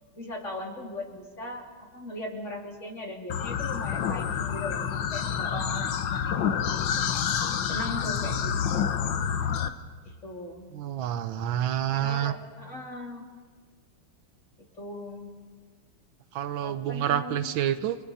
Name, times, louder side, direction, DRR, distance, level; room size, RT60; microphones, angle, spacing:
voice 1, 0.2-1.6 1.9-6.6 7.0-7.1 7.7-8.5 10.0-10.7 11.9-13.2 14.7-15.3 16.6-17.6, left 1 dB, 35° left, 0 dB, 3.3 m, -38 dB
sound 1, 3.3-9.7, left 8 dB, 70° left, 1.6 m, -28 dB
voice 2, 10.7-12.3 16.3-18.0, right 11 dB, 80° right, 12 dB, 1.5 m, -28 dB
29.5 x 23.0 x 4.2 m, 1.5 s
omnidirectional pair, 2.2 m